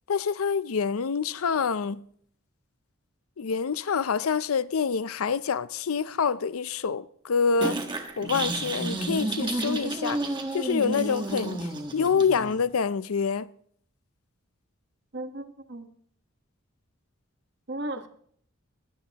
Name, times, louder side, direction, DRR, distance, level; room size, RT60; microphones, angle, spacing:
voice 1, 0.1-2.0 3.4-7.8 8.2-10.2 10.5-13.5, left 6 dB, 80° left, 0.5 m, -26 dB
sound 1, 7.6-12.6, right 2 dB, 20° right, 1.5 m, -31 dB
voice 2, 15.1-15.9 17.7-18.1, right 2 dB, 50° right, 1.3 m, -35 dB
20.5 x 17.0 x 2.9 m
head